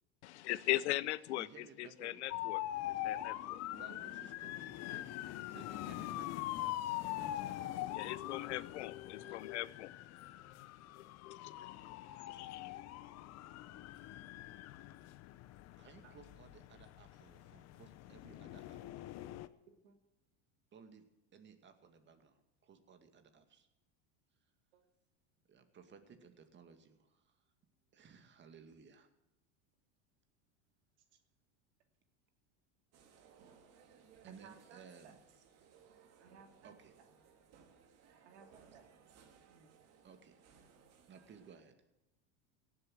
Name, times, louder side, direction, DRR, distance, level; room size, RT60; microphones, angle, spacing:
voice 1, 0.2-1.5 1.8-2.6 3.0-3.6 7.9-10.0 10.4-10.5 10.9-12.8, left 16 dB, 90° left, 0.7 m, -40 dB
voice 2, 1.3-2.2 3.7-5.0 5.4-6.7 7.1-8.4 9.2-9.4 15.8-19.3 20.7-21.0 21.3-22.3 22.6-23.7 25.5-27.0 27.9-29.1 34.2-35.2 36.6-36.9 40.0-40.3 41.1-41.7, right 6 dB, 35° right, 2.2 m, -58 dB
sound 1, 2.3-19.5, left 14 dB, 50° left, 0.9 m, -43 dB
sound 2, 32.9-41.6, right 6 dB, 50° right, 2.5 m, -64 dB
voice 3, 34.3-35.1 36.2-36.8 38.2-38.9 39.5-39.9, right 6 dB, 85° right, 2.8 m, -60 dB
17.5 x 7.8 x 7.8 m
supercardioid pair, 105°, 33 cm